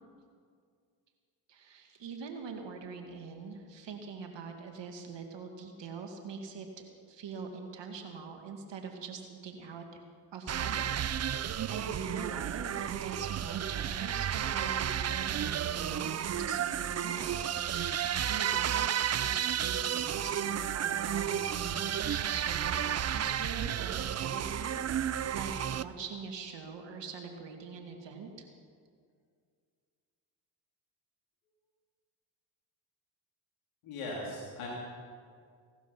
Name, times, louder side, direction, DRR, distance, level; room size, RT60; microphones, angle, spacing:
voice 1, 1.5-6.7 7.1-10.0 10.3-28.5, right 5 dB, 55° right, 4 dB, 2.1 m, -43 dB
sound 1, 10.5-25.8, right 9 dB, 30° right, 0.5 m, -32 dB
voice 2, 33.8-34.7, left 2 dB, 70° left, -4 dB, 3.4 m, -39 dB
17.5 x 12.0 x 5.9 m, 2.1 s
supercardioid pair, 60°, 50 cm